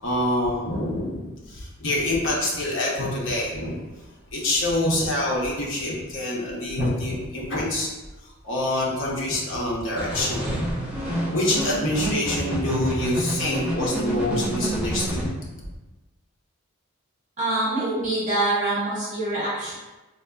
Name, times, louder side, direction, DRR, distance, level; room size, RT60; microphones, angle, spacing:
voice 1, 0.0-3.8 4.3-7.9 8.4-10.7 11.3-15.3, left 1 dB, 65° left, -4 dB, 0.8 m, -26 dB
sound 1, 10.0-15.3, right 1 dB, 5° right, 0.5 m, -28 dB
voice 2, 17.4-19.7, right 2 dB, 35° right, -8 dB, 0.9 m, -25 dB
4.1 x 2.4 x 2.3 m, 1.1 s
head